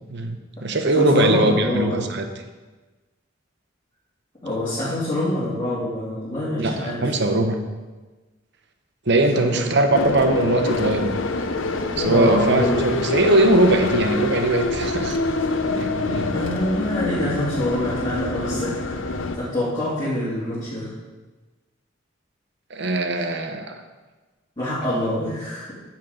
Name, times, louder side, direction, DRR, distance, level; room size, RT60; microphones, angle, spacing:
voice 1, 0.1-2.3 6.6-7.6 9.1-11.2 12.0-15.3 15.7-16.3 22.7-23.8, right 2 dB, 60° right, 7 dB, 1.0 m, -21 dB
voice 2, 0.9-2.1 4.4-7.1 9.3-9.7 11.9-13.0 16.3-19.0 19.3-20.9 24.6-25.7, left 1 dB, 20° left, -11 dB, 2.8 m, -25 dB
sound 1, 9.9-19.4, left 2 dB, 75° left, 0.8 m, -25 dB
9.6 x 7.5 x 5.1 m, 1.2 s
head